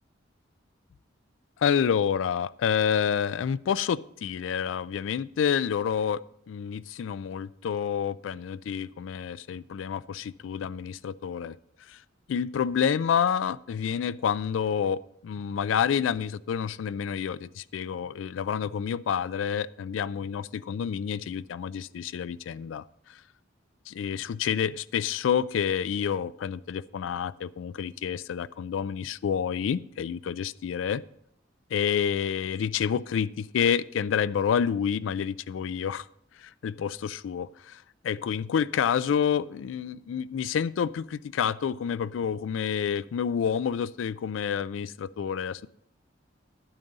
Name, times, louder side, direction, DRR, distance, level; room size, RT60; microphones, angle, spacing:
voice 1, 1.6-6.2 6.5-11.6 11.9-12.0 12.3-23.2 23.9-31.0 31.7-36.1 36.4-45.7, left 7 dB, 85° left, 18 dB, 0.3 m, -28 dB
11.0 x 8.9 x 4.0 m, 0.71 s
head